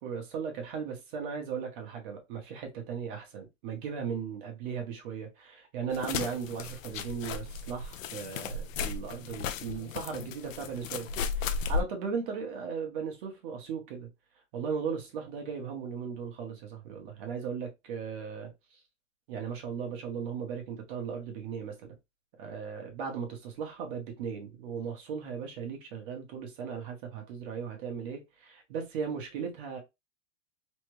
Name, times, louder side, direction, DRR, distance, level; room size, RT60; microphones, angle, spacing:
voice 1, 0.0-11.1 11.3-14.1 14.5-18.5 19.3-21.9 22.4-29.8, right 6 dB, 40° right, 1.1 m, -37 dB
sound 1, 5.9-11.8, left 6 dB, 90° left, 0.6 m, -35 dB
3.3 x 2.1 x 3.1 m
hypercardioid pair, 150°, 38 cm